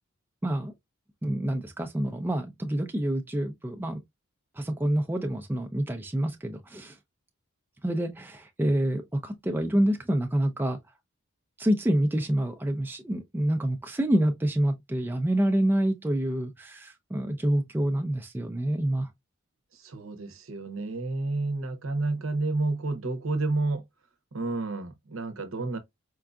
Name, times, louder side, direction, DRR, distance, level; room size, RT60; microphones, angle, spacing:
voice 1, 0.4-0.7 1.2-4.0 4.6-7.0 7.8-10.8 11.6-19.1, right 1 dB, 10° right, 0.3 m, -27 dB
voice 2, 19.7-23.8 24.3-25.8, right 2 dB, 70° right, 0.7 m, -30 dB
4.5 x 2.5 x 2.2 m
head